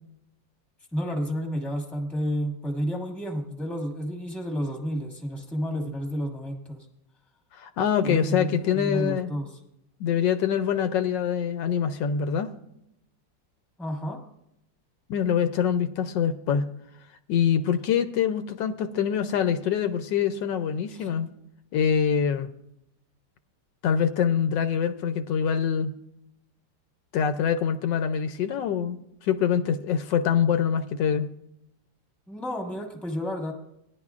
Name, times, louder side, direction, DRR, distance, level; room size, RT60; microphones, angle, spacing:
voice 1, 0.9-6.9 8.0-9.5 13.8-14.2 20.9-21.1 32.3-33.5, equal, ahead, 2 dB, 1.1 m, -31 dB
voice 2, 7.5-9.3 10.0-12.5 15.1-16.6 17.3-21.3 21.7-22.5 23.8-25.9 27.1-31.3, left 8 dB, 80° left, 10 dB, 1.2 m, -25 dB
16.5 x 10.5 x 2.4 m, 0.80 s
omnidirectional pair, 2.0 m